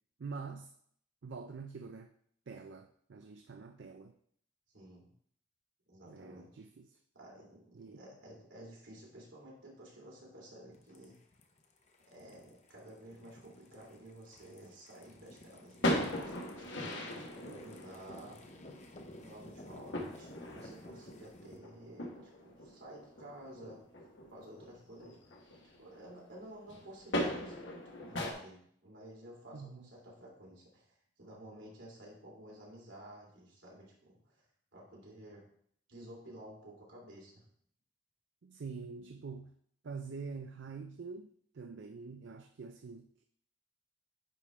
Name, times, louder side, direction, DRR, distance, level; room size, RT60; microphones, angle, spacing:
voice 1, 0.2-0.7 1.2-2.1 2.5-4.1 6.1-7.0 7.7-8.0 29.5-29.9 38.4-39.5 39.8-43.3, right 4 dB, 70° right, 7 dB, 0.4 m, -46 dB
voice 2, 4.7-5.1 5.9-6.5 7.1-11.2 12.1-18.4 19.2-23.8 24.3-25.2 25.8-34.4 34.7-35.5 35.9-37.4, right 1 dB, 85° right, -4 dB, 2.8 m, -52 dB
sound 1, 10.7-21.6, left 1 dB, 35° left, 0.8 m, -55 dB
sound 2, 15.7-26.1 26.3-28.3, left 1 dB, 75° left, 1.3 m, -39 dB
9.5 x 3.5 x 4.2 m, 0.64 s
head